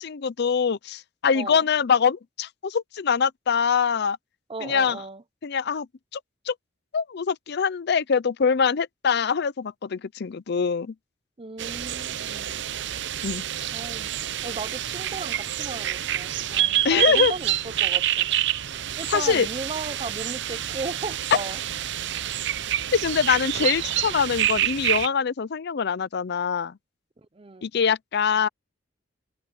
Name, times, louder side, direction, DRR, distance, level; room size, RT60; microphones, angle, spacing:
voice 1, 0.0-4.2 4.6-5.0 5.4-5.9 6.1-6.2 6.5-6.6 6.9-10.9 13.2-13.4 16.8-17.3 19.1-19.5 22.9-26.8 27.6-28.5, left 6 dB, 60° left, 0.5 m, -24 dB
voice 2, 4.5-5.2 11.4-12.6 13.7-14.1 14.4-18.3 19.0-21.6 27.2-27.7, right 3 dB, 30° right, 0.7 m, -36 dB
sound 1, 11.6-25.1, right 12 dB, 65° right, 0.7 m, -27 dB
head